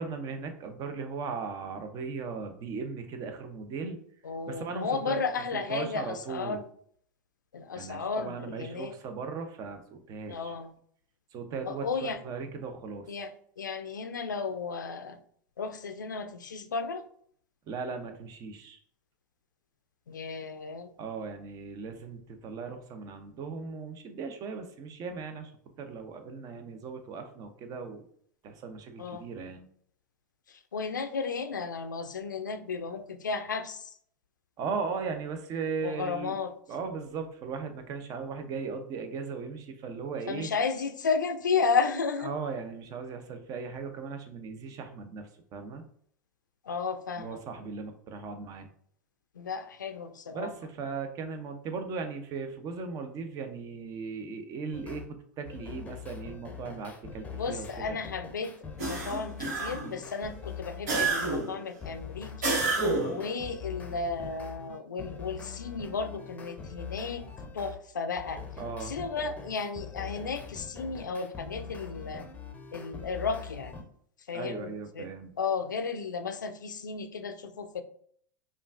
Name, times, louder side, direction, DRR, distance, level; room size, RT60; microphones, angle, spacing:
voice 1, 0.0-4.0 4.4-5.2 5.5-6.6 7.8-10.5 11.3-13.1 17.7-18.8 21.0-25.5 25.8-28.0 28.4-29.7 34.6-36.4 36.7-40.5 42.2-45.8 47.2-48.7 50.3-55.0 55.4-58.0 68.6-68.9 74.3-75.4, right 5 dB, 40° right, 7 dB, 0.7 m, -37 dB
voice 2, 4.2-6.7 7.5-8.9 10.3-10.7 11.7-12.2 13.1-15.2 15.6-17.0 20.1-20.9 29.0-29.3 30.5-33.9 35.8-36.5 40.3-42.3 46.7-47.4 49.4-50.5 57.3-62.6 63.1-67.3 67.5-68.4 68.8-72.3 72.7-73.7 74.3-75.1 75.4-77.8, left 5 dB, 85° left, 10 dB, 0.4 m, -33 dB
sound 1, 54.7-55.1 55.5-61.4 61.8-67.8 68.2-73.8, left 6 dB, 15° left, 0.7 m, -43 dB
sound 2, 58.8-60.0 60.9-61.6 62.4-63.2, right 3 dB, 65° right, 1.4 m, -29 dB
5.2 x 2.4 x 2.5 m, 0.62 s
hypercardioid pair, 95°, 10 cm